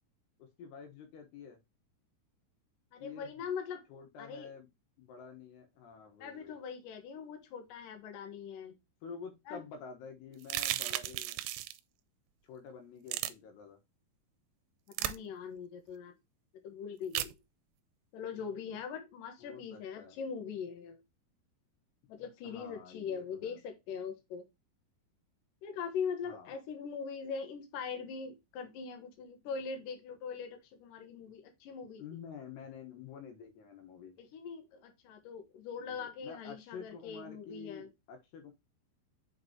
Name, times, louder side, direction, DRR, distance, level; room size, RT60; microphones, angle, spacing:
voice 1, 0.4-1.6 3.0-3.5 3.9-4.7 5.0-6.6 9.0-11.4 12.4-13.8 19.4-20.2 22.4-23.6 26.2-26.6 32.0-34.2 35.8-38.5, left 6 dB, 80° left, 3.5 m, -49 dB
voice 2, 2.9-3.8 4.2-4.5 6.2-8.7 9.5-9.6 15.0-16.1 16.6-17.3 18.1-21.0 22.1-24.4 25.6-32.0 34.2-37.9, left 6 dB, 65° left, 2.8 m, -41 dB
sound 1, 10.4-11.8 13.1-13.3 14.9-15.2 17.1-17.3, right 15 dB, 85° right, 2.7 m, -34 dB
7.0 x 5.4 x 3.0 m
omnidirectional pair, 4.8 m